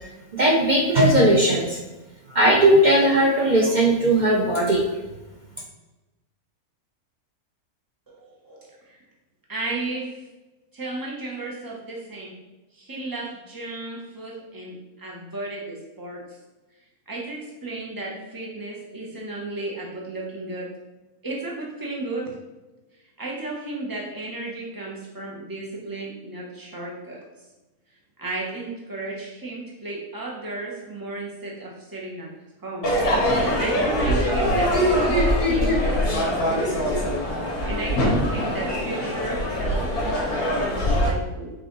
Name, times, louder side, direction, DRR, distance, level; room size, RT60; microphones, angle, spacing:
voice 1, 0.0-1.8 2.3-4.8, right 1 dB, 60° right, -2 dB, 0.4 m, -18 dB
voice 2, 8.1-9.0 9.5-10.2 10.7-12.4 12.7-16.4 17.1-20.7 21.2-22.4 23.2-27.2 28.2-32.3 32.6-32.9 33.3-37.1 37.6-41.5, right 2 dB, 15° right, -3 dB, 0.8 m, -34 dB
Crowd / Fireworks, 32.8-41.1, equal, 75° left, 1.7 m, -22 dB
5.6 x 2.5 x 3.9 m, 1.1 s
omnidirectional pair, 1.6 m